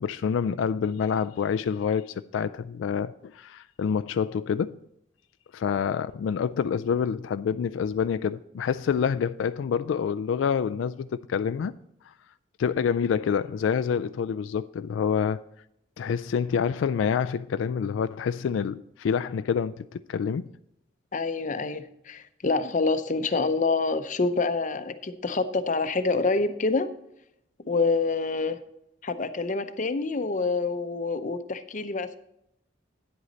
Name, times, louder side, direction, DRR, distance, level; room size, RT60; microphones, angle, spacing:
voice 1, 0.0-4.8 5.5-11.7 12.1-12.2 12.6-15.4 16.0-20.5, left 7 dB, 85° left, 0.3 m, -27 dB
voice 2, 21.1-26.9 27.6-28.6 29.0-32.2, left 3 dB, 40° left, 0.6 m, -27 dB
9.7 x 8.1 x 4.0 m
head